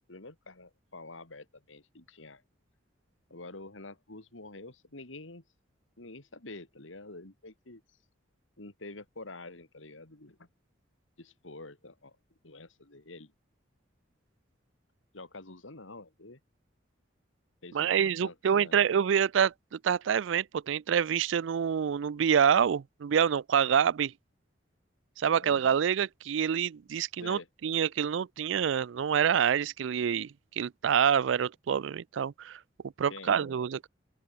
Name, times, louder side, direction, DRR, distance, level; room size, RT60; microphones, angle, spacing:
voice 1, 0.1-2.4 3.3-5.4 6.0-7.8 8.6-10.5 11.2-12.2 12.4-13.3 15.1-16.4 17.6-18.8 25.3-25.6 27.2-27.5 33.1-33.6, left 2 dB, 90° left, 2.8 m, -47 dB
voice 2, 17.7-24.1 25.2-32.6 33.0-33.9, right 8 dB, 75° right, 0.4 m, -27 dB
open air
head